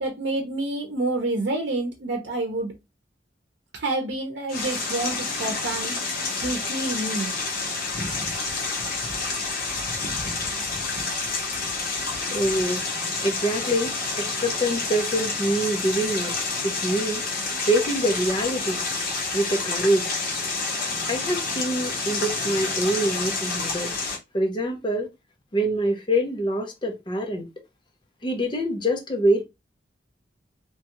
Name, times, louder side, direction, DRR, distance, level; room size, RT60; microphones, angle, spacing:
voice 1, 0.0-2.7 3.7-5.9 6.4-7.3, right 2 dB, 85° right, 0.6 m, -28 dB
sound 1, 4.5-24.2, left 3 dB, 55° left, 1.0 m, -29 dB
voice 2, 12.3-12.8 13.2-16.3 16.6-17.2 17.7-18.8 19.3-20.0 21.1-23.9 24.3-25.1 25.5-27.5 28.2-29.4, right 1 dB, 25° left, 0.6 m, -25 dB
3.0 x 2.3 x 2.9 m
head